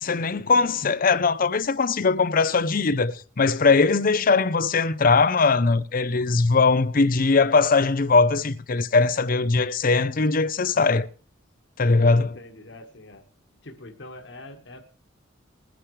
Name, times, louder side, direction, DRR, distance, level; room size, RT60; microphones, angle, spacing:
voice 1, 0.0-11.1 11.8-12.4, left 4 dB, 45° left, 0.6 m, -20 dB
voice 2, 12.3-13.2 13.6-14.8, left 1 dB, 65° left, 1.6 m, -43 dB
21.0 x 10.0 x 3.3 m
head